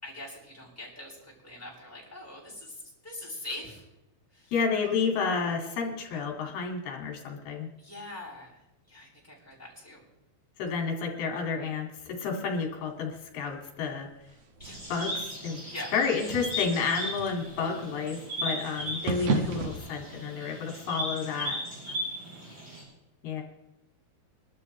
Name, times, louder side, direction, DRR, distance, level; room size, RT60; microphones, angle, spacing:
voice 1, 0.0-3.8 4.3-4.5 7.8-10.0 14.6-14.8 15.6-15.9 21.9-22.6, left 1 dB, 5° left, -6 dB, 6.6 m, -43 dB
voice 2, 4.5-7.7 10.6-14.1 14.9-15.6 15.9-21.6 23.2-23.4, left 5 dB, 70° left, 1 dB, 4.3 m, -30 dB
sound 1, 12.7-19.8, right 3 dB, 55° right, 1.8 m, -36 dB
sound 2, 14.6-22.8, equal, 30° right, 7.0 m, -37 dB
25.0 x 13.0 x 3.3 m, 0.92 s
omnidirectional pair, 4.7 m